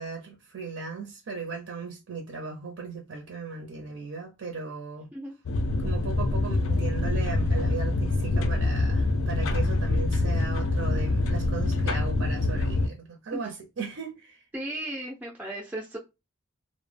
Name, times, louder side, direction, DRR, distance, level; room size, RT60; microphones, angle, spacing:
voice 1, 0.0-5.1 5.8-14.4, right 4 dB, 75° right, 0.5 m, -37 dB
sound 1, 5.5-12.9, left 2 dB, 75° left, 0.3 m, -25 dB
voice 2, 14.5-16.0, right 1 dB, 10° right, 0.3 m, -35 dB
2.0 x 2.0 x 3.1 m
head